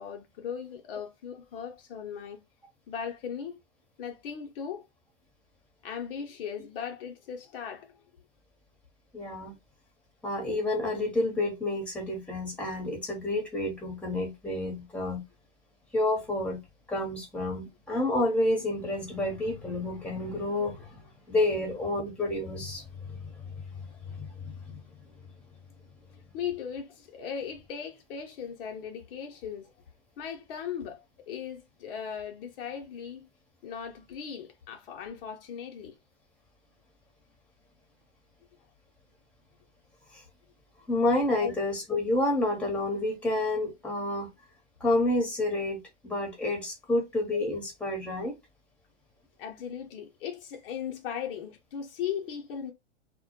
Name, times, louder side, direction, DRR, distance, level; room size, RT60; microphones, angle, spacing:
voice 1, 0.0-2.4 2.9-3.6 4.0-4.8 5.8-7.9 9.4-9.5 23.1-23.2 26.3-29.7 30.2-33.3 33.6-35.9 41.4-41.5 49.4-52.7, left 8 dB, 55° left, 0.6 m, -38 dB
voice 2, 9.1-9.5 10.2-15.2 15.9-16.6 16.9-21.0 21.3-23.6 24.0-24.8 40.9-44.3 44.8-45.8 46.0-48.4, left 2 dB, 5° left, 0.8 m, -29 dB
2.1 x 2.1 x 2.9 m
hypercardioid pair, 115°, 35 cm